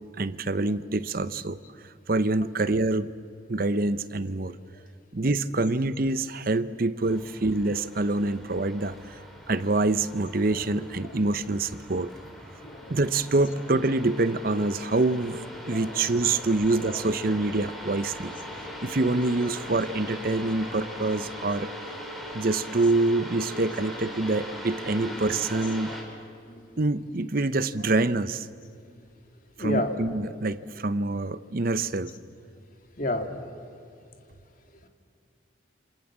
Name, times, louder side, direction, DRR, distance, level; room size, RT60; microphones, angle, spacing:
voice 1, 0.2-1.6 1.8-3.1 3.5-4.5 5.1-12.1 12.9-18.3 18.8-21.7 22.3-25.9 26.8-28.5 29.6-32.1, right 2 dB, 45° right, 14 dB, 0.8 m, -26 dB
sound 1, 7.0-26.0, left 1 dB, ahead, 4.0 m, -40 dB
voice 2, 10.5-10.9 12.6-13.0 13.4-13.5 15.7-17.1 20.1-20.2 22.8-22.9 24.0-24.1 25.0-26.0 26.5-26.6 29.6-29.9 32.0-32.1 33.0-33.4, left 1 dB, 45° left, 4 dB, 2.5 m, -35 dB
28.5 x 26.0 x 7.4 m, 2.5 s
head